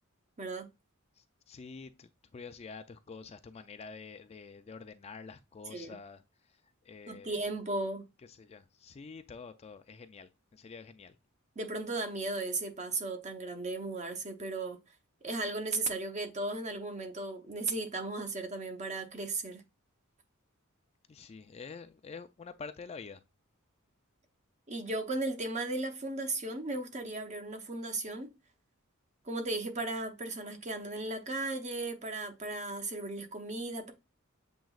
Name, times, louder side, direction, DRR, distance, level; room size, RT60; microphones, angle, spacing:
voice 1, 1.2-7.4 8.2-11.2 21.1-23.2, left 5 dB, 30° left, 0.3 m, -48 dB
voice 2, 7.1-8.1 11.6-14.8 15.2-19.6 24.7-28.3 29.2-33.9, right 2 dB, 35° right, 0.8 m, -36 dB
7.4 x 3.0 x 2.3 m
head